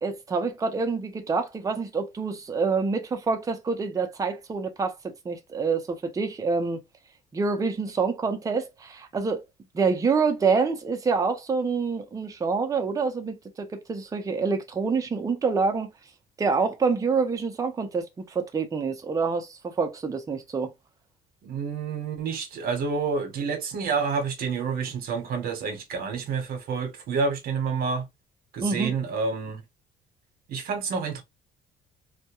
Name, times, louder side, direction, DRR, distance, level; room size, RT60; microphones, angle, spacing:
voice 1, 0.0-6.8 7.3-9.5 9.7-15.9 16.4-20.7 28.6-28.9, right 4 dB, 20° right, 0.5 m, -27 dB
voice 2, 21.4-28.1 28.5-29.6 30.5-31.2, right 5 dB, 65° right, 0.8 m, -29 dB
2.2 x 2.1 x 2.8 m
cardioid pair, 110°, 17 cm